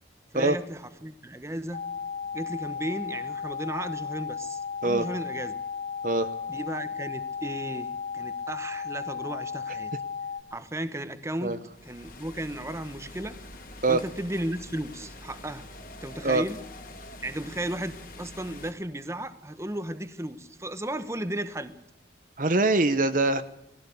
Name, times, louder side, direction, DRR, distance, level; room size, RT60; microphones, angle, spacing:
voice 1, 0.3-1.8 2.3-5.6 6.5-9.9 10.5-13.4 13.9-15.7 16.0-16.6 17.2-21.7, right 1 dB, 15° right, 11 dB, 1.1 m, -35 dB
sound 1, 1.7-10.4, left 6 dB, 35° left, 1.6 m, -35 dB
sound 2, 11.7-18.7, left 1 dB, 50° left, 3.3 m, -45 dB
voice 2, 22.4-23.4, right 2 dB, 45° right, 11 dB, 0.9 m, -23 dB
20.0 x 16.0 x 8.4 m, 0.81 s
head